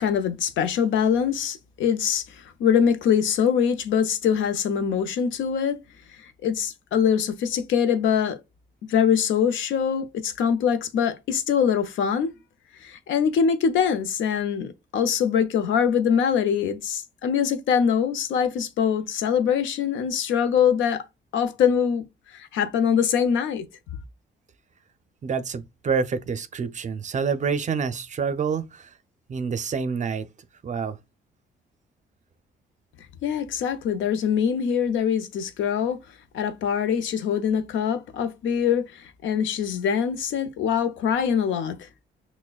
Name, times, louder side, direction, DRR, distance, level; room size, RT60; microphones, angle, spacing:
voice 1, 0.0-5.8 6.2-8.4 8.9-12.3 12.8-21.0 21.3-22.0 22.3-23.7 33.2-36.0 36.3-41.8, left 7 dB, 75° left, 0.6 m, -23 dB
voice 2, 25.2-28.9 29.3-30.3 30.6-31.0, right 5 dB, 40° right, 0.5 m, -27 dB
5.8 x 2.1 x 2.3 m
cardioid pair, 90°, 20 cm